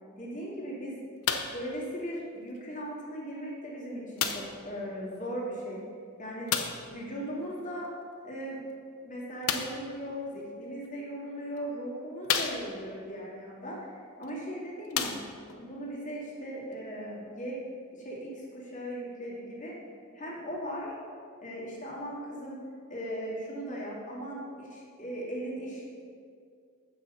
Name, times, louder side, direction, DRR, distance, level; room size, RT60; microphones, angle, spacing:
voice 1, 0.2-1.0 1.5-5.8 6.2-6.5 6.9-7.9 8.2-8.6 9.1-15.2 15.6-17.6 17.9-19.7 20.2-20.9 21.4-22.6 22.9-26.0, equal, 35° left, -5 dB, 2.3 m, -38 dB
sound 1, 1.2-1.7 2.6-2.7 4.2-4.6 6.5-6.9 9.4-9.9 10.8-10.9 11.6-11.7 12.2-13.0 14.2-14.3 14.8-15.6 16.4-16.5, left 7 dB, 70° left, 0.6 m, -31 dB
6.2 x 6.1 x 7.1 m, 2.3 s
head